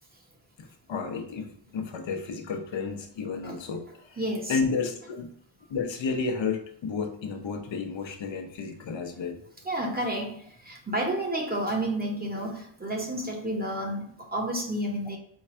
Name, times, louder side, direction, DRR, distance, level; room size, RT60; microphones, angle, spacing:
voice 1, 0.6-4.2 4.5-5.3 5.7-9.4, left 5 dB, 80° left, 5 dB, 0.8 m, -32 dB
voice 2, 4.2-4.6 9.6-15.2, right 1 dB, 20° right, -1 dB, 1.0 m, -30 dB
4.5 x 2.4 x 4.3 m, 0.65 s
wide cardioid pair, 120°, 44 cm